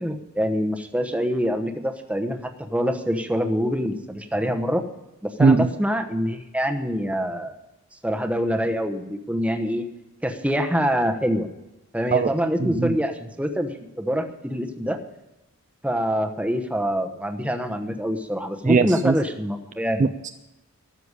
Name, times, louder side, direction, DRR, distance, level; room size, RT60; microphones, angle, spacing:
voice 1, 0.0-4.8 5.2-7.6 8.0-9.8 10.2-11.5 11.9-15.0 15.8-20.1, equal, 5° right, 6 dB, 1.0 m, -25 dB
voice 2, 12.6-13.0 18.7-19.2 20.0-20.3, right 4 dB, 35° right, 9 dB, 0.4 m, -19 dB
13.5 x 7.0 x 9.6 m, 0.95 s
head